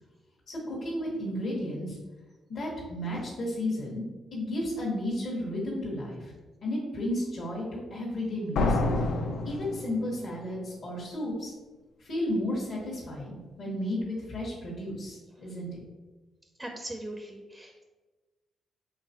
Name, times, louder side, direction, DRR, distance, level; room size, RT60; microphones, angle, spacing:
voice 1, 0.5-2.0 2.5-4.0 4.3-6.3 6.6-8.8 9.4-11.5 12.0-15.7, left 1 dB, 60° left, -6 dB, 1.4 m, -33 dB
sound 1, 8.6-10.4, left 2 dB, 75° left, 0.5 m, -28 dB
voice 2, 16.6-17.8, right 1 dB, 15° right, 3 dB, 0.5 m, -40 dB
4.7 x 3.5 x 2.9 m, 1.2 s
cardioid pair, 75°, 0 cm